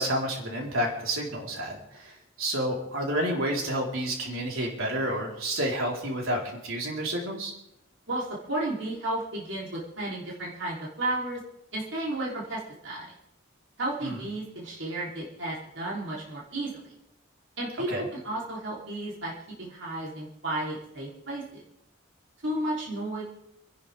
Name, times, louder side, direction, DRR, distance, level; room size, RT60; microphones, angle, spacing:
voice 1, 0.0-7.5 14.0-14.2 17.9-18.1, right 1 dB, 90° right, -2 dB, 4.2 m, -30 dB
voice 2, 8.1-11.4 11.7-13.1 13.8-16.9 17.6-19.3 19.6-21.6 22.4-23.2, right 1 dB, 65° right, -5 dB, 3.6 m, -33 dB
29.0 x 11.0 x 3.6 m, 0.79 s
head